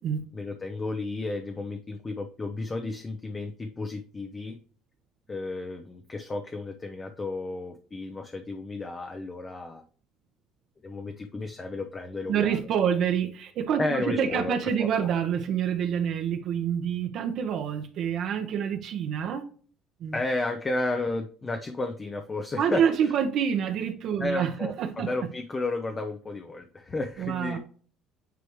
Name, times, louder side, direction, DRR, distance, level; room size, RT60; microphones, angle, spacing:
voice 1, 0.3-4.6 5.3-9.8 10.8-12.6 13.8-14.5 14.8-14.9 20.1-22.8 24.2-27.6, left 2 dB, 20° left, 0.6 m, -32 dB
voice 2, 12.3-19.4 20.0-20.2 22.6-25.1 27.2-27.6, right 8 dB, 55° right, 0.9 m, -27 dB
9.3 x 3.4 x 3.1 m
cardioid pair, 130°, 0 cm